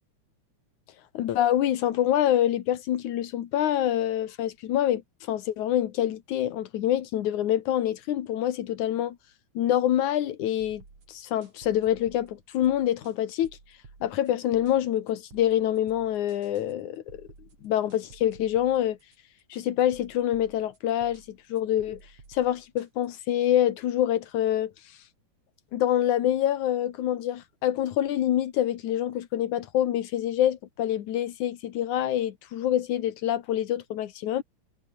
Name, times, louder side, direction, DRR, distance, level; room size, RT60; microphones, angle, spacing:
voice 1, 1.1-5.0 5.3-9.2 9.6-10.8 11.1-13.5 14.0-17.3 17.6-19.0 19.5-22.0 22.3-24.7 25.7-34.4, left 11 dB, 90° left, 2.9 m, -26 dB
sound 1, 10.6-23.5, right 4 dB, 60° right, 6.3 m, -54 dB
omnidirectional pair, 3.3 m